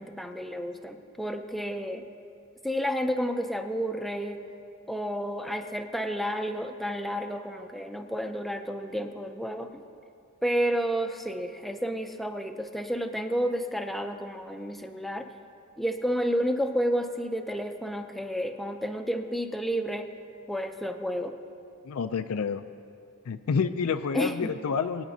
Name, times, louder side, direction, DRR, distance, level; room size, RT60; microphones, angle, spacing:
voice 1, 0.0-2.0 2.6-4.4 4.9-9.8 10.4-15.3 15.8-20.1 20.5-21.3 24.1-24.5, equal, ahead, 6 dB, 0.5 m, -31 dB
voice 2, 21.8-22.6 23.3-25.0, left 5 dB, 75° left, 8 dB, 0.4 m, -28 dB
22.5 x 9.4 x 2.7 m, 2.5 s
head